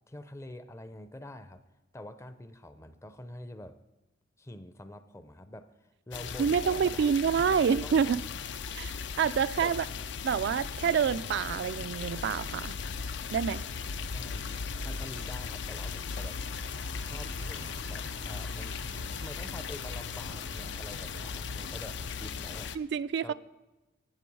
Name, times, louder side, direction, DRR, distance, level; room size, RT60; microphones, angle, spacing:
voice 1, 0.1-1.6 1.9-3.8 4.4-7.2 7.5-8.2 9.6-9.7 14.1-14.6 14.8-16.4 17.0-18.8 19.2-22.7 23.2-23.3, left 1 dB, 15° left, 0.5 m, -46 dB
sound 1, 6.1-22.8, left 5 dB, 65° left, 0.5 m, -37 dB
voice 2, 6.4-8.2 8.7-9.8 10.2-12.8 13.3-13.6 22.8-23.3, right 7 dB, 65° right, 0.3 m, -27 dB
sound 2, 14.3-22.7, right 3 dB, 90° right, 0.7 m, -52 dB
13.0 x 8.6 x 4.7 m
head